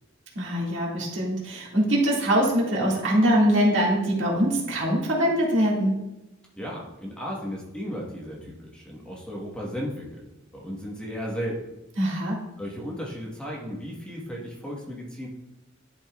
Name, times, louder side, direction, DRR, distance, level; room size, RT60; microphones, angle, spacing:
voice 1, 0.4-6.0 12.0-12.4, equal, 65° right, -3 dB, 2.0 m, -23 dB
voice 2, 6.6-11.7 12.6-15.3, equal, 5° left, -4 dB, 1.2 m, -35 dB
10.5 x 5.4 x 2.4 m, 0.94 s
head